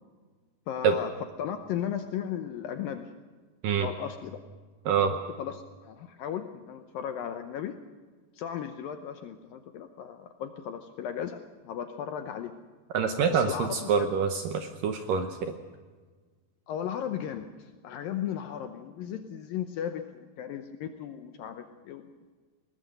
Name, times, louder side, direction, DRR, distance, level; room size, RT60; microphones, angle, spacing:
voice 1, 0.7-1.1 1.4-3.1 3.8-4.4 5.0-7.8 8.4-12.5 13.3-14.1 16.7-22.0, left 9 dB, 75° left, 7 dB, 2.2 m, -36 dB
voice 2, 12.9-15.5, right 6 dB, 75° right, 7 dB, 2.1 m, -26 dB
21.0 x 19.0 x 6.7 m, 1.4 s
omnidirectional pair, 4.9 m